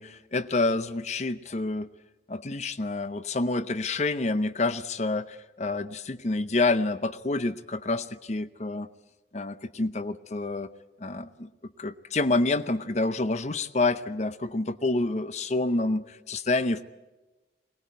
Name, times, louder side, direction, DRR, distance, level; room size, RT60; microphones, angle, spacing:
voice 1, 0.0-1.9 2.3-8.9 9.3-10.7 11.0-11.5 11.8-16.8, left 2 dB, 40° left, 13 dB, 0.7 m, -28 dB
22.5 x 18.5 x 9.3 m, 1.2 s
head